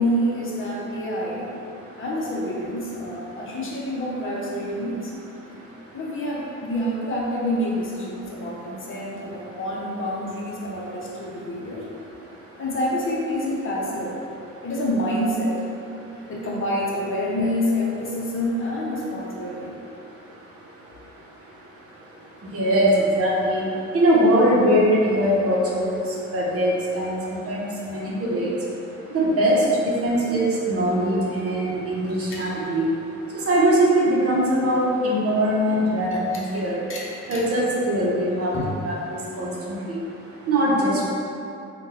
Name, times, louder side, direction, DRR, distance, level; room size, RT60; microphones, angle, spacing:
voice 1, 0.0-1.5 2.0-5.1 5.9-11.8 12.6-14.2 14.6-15.6 16.3-19.8 32.3-32.5 36.1-37.4 38.5-38.7, left 1 dB, 45° left, -5 dB, 0.7 m, -27 dB
voice 2, 22.5-23.6 23.9-26.0 26.3-28.5 29.1-32.9 33.5-36.8 37.3-38.5 38.8-40.0 40.5-41.1, right 1 dB, 50° right, -5 dB, 0.7 m, -21 dB
2.5 x 2.2 x 3.9 m, 2.7 s
cardioid pair, 90°, 30 cm